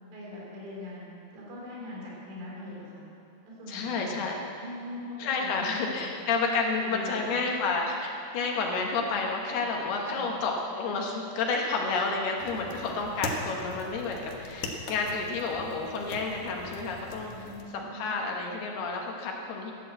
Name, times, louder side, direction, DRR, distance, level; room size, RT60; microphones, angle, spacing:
voice 1, 0.1-3.1 3.5-4.2 4.5-6.1 6.8-7.3 10.1-10.4 12.5-12.7 17.3-18.1, left 1 dB, 90° right, -4 dB, 6.3 m, -42 dB
voice 2, 3.7-4.4 5.2-17.3 17.7-19.7, left 4 dB, 70° left, 0 dB, 2.9 m, -30 dB
sound 1, 12.4-17.6, left 2 dB, 90° left, 1.6 m, -40 dB
14.0 x 11.0 x 7.9 m, 2.6 s
omnidirectional pair, 5.4 m